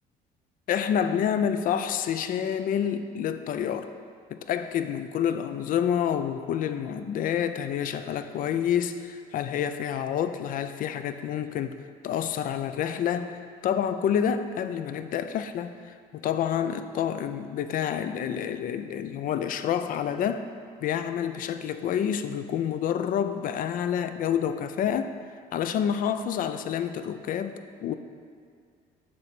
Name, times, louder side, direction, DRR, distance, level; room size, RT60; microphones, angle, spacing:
voice 1, 0.7-3.9 4.3-20.5 20.8-25.1 25.5-27.9, left 8 dB, 55° left, 10 dB, 0.4 m, -28 dB
7.6 x 2.7 x 5.8 m, 2.2 s
cardioid pair, 110°, 17 cm